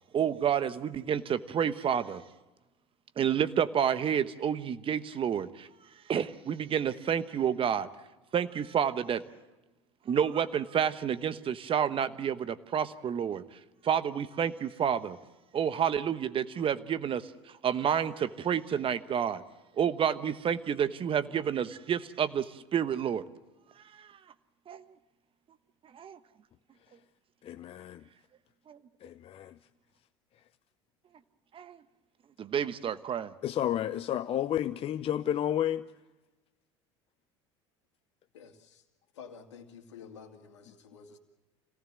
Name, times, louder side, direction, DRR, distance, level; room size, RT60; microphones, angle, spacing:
voice 1, 0.1-2.2 3.2-5.7 6.1-7.9 8.3-9.2 10.1-15.2 15.5-19.4 19.8-23.2 23.9-24.2 24.7-24.9 25.9-26.2 28.7-28.8 31.5-31.8 32.4-33.3, right 8 dB, 40° right, 13 dB, 1.2 m, -29 dB
voice 2, 27.5-28.0 29.0-29.5 33.4-35.8, left 11 dB, 40° left, 12 dB, 0.6 m, -31 dB
voice 3, 38.3-38.8 39.1-41.2, left 6 dB, 85° left, 5 dB, 2.4 m, -50 dB
26.5 x 18.5 x 7.5 m, 1.1 s
hypercardioid pair, 75°, 15 cm